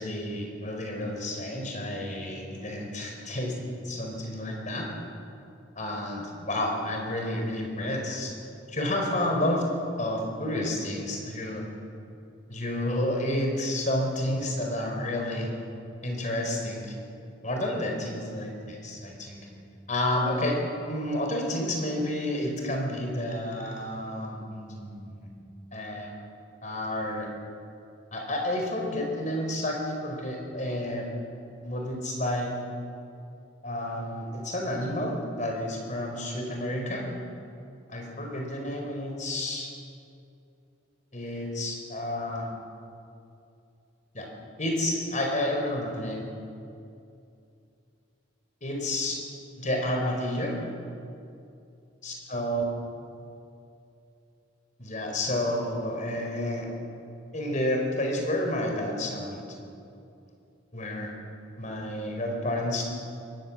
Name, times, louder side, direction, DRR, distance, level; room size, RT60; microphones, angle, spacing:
voice 1, 0.0-3.6 3.8-4.9 5.7-8.3 8.7-9.7 10.0-11.6 12.5-15.5 16.0-16.9 17.4-19.5 19.9-20.6 20.9-25.3 25.7-26.1 26.6-27.3 28.1-31.1 31.6-32.5 33.6-37.0 37.9-39.7 41.1-42.5 44.1-44.3 44.6-46.2 48.6-49.2 49.6-50.6 52.0-52.6 54.8-56.7 57.3-59.4 60.7-61.1 61.6-62.9, left 1 dB, 45° left, 1 dB, 4.8 m, -30 dB
24.0 x 19.0 x 7.4 m, 2.6 s
head